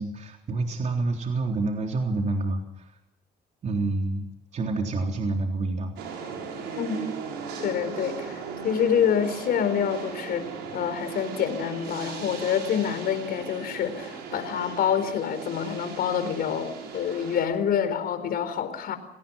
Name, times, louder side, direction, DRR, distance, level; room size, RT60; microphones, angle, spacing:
voice 1, 0.0-2.9 3.6-4.2 4.5-5.9, right 3 dB, 45° right, 2 dB, 3.7 m, -28 dB
sound 1, 6.0-17.5, right 5 dB, 90° right, 7.4 m, -37 dB
voice 2, 7.6-10.4 10.7-19.0, left 8 dB, 65° left, 10 dB, 4.4 m, -27 dB
29.5 x 19.0 x 5.6 m, 0.86 s
cardioid pair, 110°, 17 cm